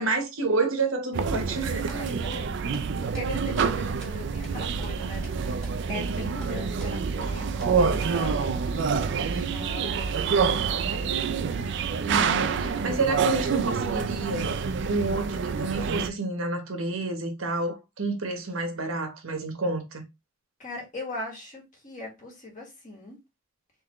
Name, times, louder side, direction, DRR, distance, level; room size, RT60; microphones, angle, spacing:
voice 1, 0.0-1.8 12.0-14.5 14.8-20.0, right 3 dB, 80° right, 1.1 m, -29 dB
sound 1, 1.1-16.1, right 5 dB, 55° right, 0.4 m, -27 dB
sound 2, 1.5-1.6 1.9-2.0 2.3-2.4 2.7-2.9 3.1-3.3 3.6-3.7 4.0-4.1 4.4-4.5 4.8-4.9 5.2-5.4 5.6-5.8 6.0-6.1 6.4-6.5 6.8-6.9 7.2-7.3 7.6-7.7 8.0-8.1, right 1 dB, ahead, 1.5 m, -45 dB
voice 2, 1.9-2.8 3.1-11.2 11.9-12.7 20.6-23.2, left 2 dB, 40° left, 1.6 m, -41 dB
3.8 x 3.5 x 3.0 m
head